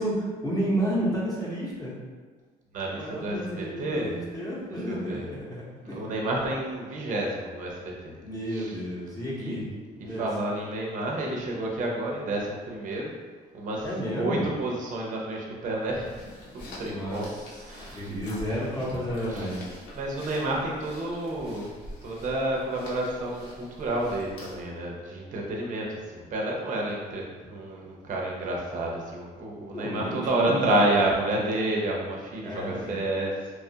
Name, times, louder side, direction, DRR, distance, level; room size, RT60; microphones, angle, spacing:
voice 1, 0.0-2.0 2.9-6.2 8.1-9.7 10.0-10.3 13.8-14.5 16.8-17.6 17.9-19.7 29.7-31.4 32.4-33.0, equal, 20° left, -7 dB, 0.8 m, -31 dB
voice 2, 2.7-4.1 4.9-5.3 5.8-8.1 8.5-8.8 9.4-9.5 10.1-13.1 13.5-13.9 14.2-16.2 16.5-17.3 17.6-18.1 19.3-19.5 19.9-21.7 22.0-33.5, right 1 dB, 50° right, -2 dB, 0.6 m, -30 dB
sound 1, 15.7-24.7, left 1 dB, 80° left, 0.9 m, -45 dB
3.0 x 2.3 x 2.7 m, 1.5 s
cardioid pair, 110°, 17 cm